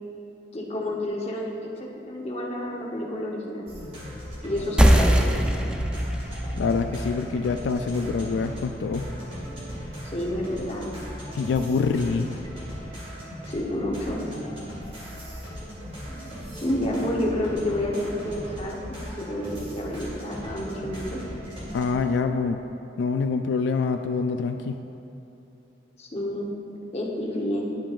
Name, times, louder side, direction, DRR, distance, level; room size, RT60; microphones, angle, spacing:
voice 1, 0.5-3.7 4.4-5.3 10.0-10.9 13.5-14.3 16.6-18.8 19.2-21.2 26.0-26.5 26.9-27.8, left 1 dB, 35° left, -3 dB, 1.0 m, -29 dB
sound 1, 3.7-21.8, equal, 35° right, 1.8 m, -38 dB
sound 2, 4.8-9.9, equal, 5° right, 0.3 m, -24 dB
voice 2, 6.6-9.1 11.3-12.4 21.7-22.6 23.0-24.8, left 4 dB, 85° left, 6 dB, 0.3 m, -25 dB
10.5 x 7.5 x 2.5 m, 2.9 s
head